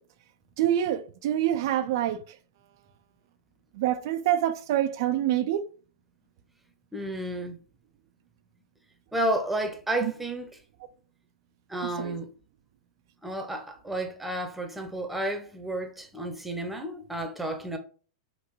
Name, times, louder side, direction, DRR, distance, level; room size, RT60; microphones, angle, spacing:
voice 1, 0.6-2.2 3.7-5.7 10.0-10.1 11.8-12.1, right 11 dB, 60° right, 0.4 m, -26 dB
voice 2, 6.9-7.6 9.1-10.5 11.7-12.3 13.2-17.8, right 1 dB, 5° right, 0.7 m, -31 dB
3.7 x 2.2 x 3.1 m
hypercardioid pair, 105°, 2 cm